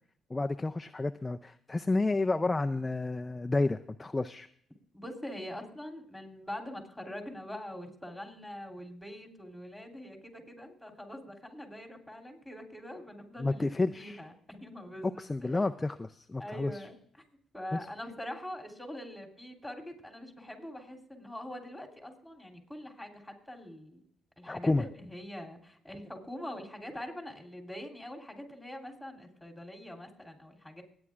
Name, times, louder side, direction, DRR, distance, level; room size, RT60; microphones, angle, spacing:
voice 1, 0.3-4.5 13.4-14.2 15.2-16.8 17.7-17.8 24.5-24.8, left 2 dB, 20° left, 7 dB, 0.4 m, -30 dB
voice 2, 4.9-13.7 14.0-15.7 16.4-17.0 17.5-24.0 24.4-30.8, left 1 dB, ahead, 3 dB, 3.2 m, -44 dB
24.5 x 9.6 x 2.4 m, 0.63 s
cardioid pair, 90°, 0 cm